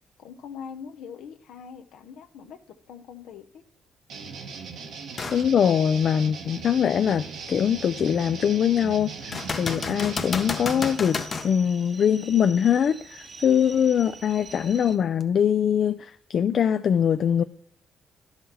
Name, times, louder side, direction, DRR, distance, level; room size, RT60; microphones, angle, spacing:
voice 1, 0.2-3.6, left 7 dB, 85° left, 0.7 m, -42 dB
sound 1, 4.1-10.9, right 5 dB, 80° right, 1.2 m, -39 dB
sound 2, 5.2-5.5 6.0-6.1 9.3-11.5 15.2-15.3, left 4 dB, 40° left, 0.7 m, -31 dB
voice 2, 5.3-11.2 11.4-17.4, left 8 dB, 60° left, 0.3 m, -23 dB
sound 3, 7.1-15.0, right 4 dB, 45° right, 0.9 m, -47 dB
11.0 x 5.6 x 4.2 m
cardioid pair, 90°, 0 cm